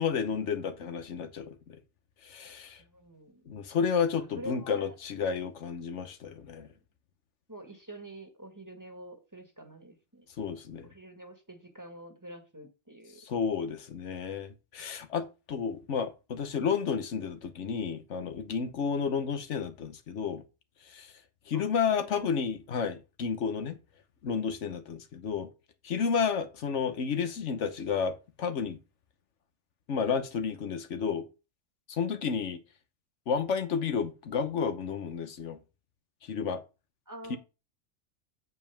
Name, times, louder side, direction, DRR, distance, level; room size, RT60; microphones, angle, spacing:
voice 1, 0.0-1.8 2.2-2.8 3.5-6.7 10.4-10.9 13.2-20.4 20.9-21.1 21.5-23.8 24.2-25.5 25.8-28.8 29.9-31.2 31.9-32.6 33.3-35.6 36.2-36.6 37.3-37.4, left 6 dB, 90° left, 1.3 m, -31 dB
voice 2, 2.8-3.4 4.4-5.0 6.5-6.7 7.5-10.3 10.8-13.2 21.5-21.7 21.9-22.3 24.7-24.8 37.1-37.4, equal, 15° right, 1.6 m, -46 dB
8.4 x 7.1 x 3.5 m
omnidirectional pair, 1.2 m